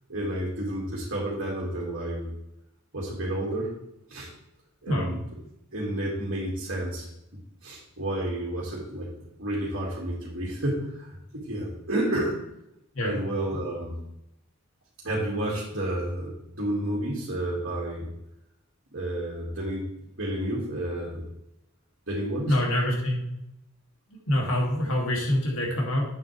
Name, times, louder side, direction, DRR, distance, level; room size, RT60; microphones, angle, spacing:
voice 1, 0.1-2.3 2.9-3.7 4.1-4.3 4.8-5.2 5.7-7.1 7.6-9.1 9.4-12.4 13.0-14.0 15.0-18.1 18.9-19.9 20.2-21.2 22.1-22.6, right 1 dB, 55° right, -5 dB, 2.2 m, -30 dB
voice 2, 22.5-23.2 24.3-26.1, left 1 dB, 65° left, -2 dB, 2.6 m, -25 dB
8.7 x 7.5 x 3.3 m, 0.83 s
head